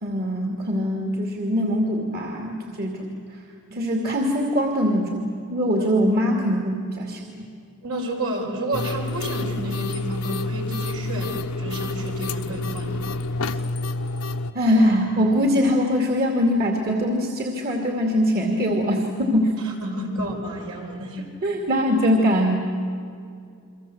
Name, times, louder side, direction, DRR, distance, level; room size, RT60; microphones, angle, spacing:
voice 1, 0.0-3.1 3.7-7.3 14.5-19.5 21.4-22.6, equal, 45° right, 2 dB, 2.5 m, -22 dB
voice 2, 3.7-4.1 7.8-13.0 19.6-21.3, right 1 dB, 70° right, 1 dB, 5.5 m, -31 dB
sound 1, 8.7-14.5, left 2 dB, 75° left, 1.2 m, -28 dB
29.0 x 24.0 x 7.9 m, 2.4 s
head